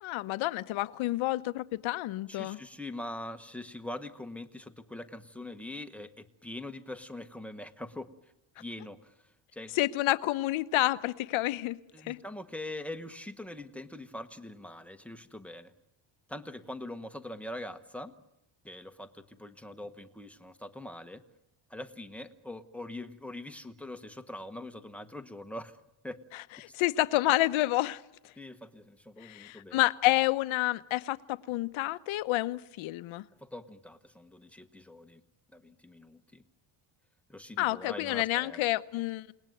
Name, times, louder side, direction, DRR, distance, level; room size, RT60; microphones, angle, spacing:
voice 1, 0.0-2.6 9.7-12.2 26.7-28.0 29.2-33.2 37.6-39.3, left 17 dB, 90° left, 1.1 m, -29 dB
voice 2, 2.3-8.1 8.6-9.1 9.5-9.7 11.9-15.7 16.3-18.1 18.6-21.2 21.7-25.8 26.0-26.2 28.4-29.8 33.4-35.2 35.5-36.4 37.3-38.6, left 1 dB, 5° left, 1.0 m, -43 dB
28.5 x 19.5 x 9.2 m
cardioid pair, 170°, 46 cm